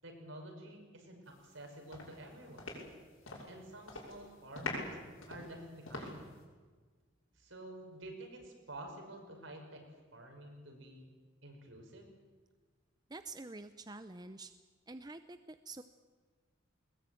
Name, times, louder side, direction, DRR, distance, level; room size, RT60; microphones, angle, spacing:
voice 1, 0.0-2.8 3.5-5.0 5.3-6.4 7.4-11.1 11.4-12.1, right 1 dB, 70° right, 2 dB, 5.6 m, -50 dB
sound 1, 1.4-1.6 1.9-3.6 3.8-4.2 4.5-6.4, left 2 dB, 85° left, 6.5 m, -43 dB
voice 2, 13.1-14.5 14.9-15.8, right 3 dB, 20° right, 10 dB, 0.6 m, -47 dB
21.0 x 20.5 x 9.1 m, 1.4 s
head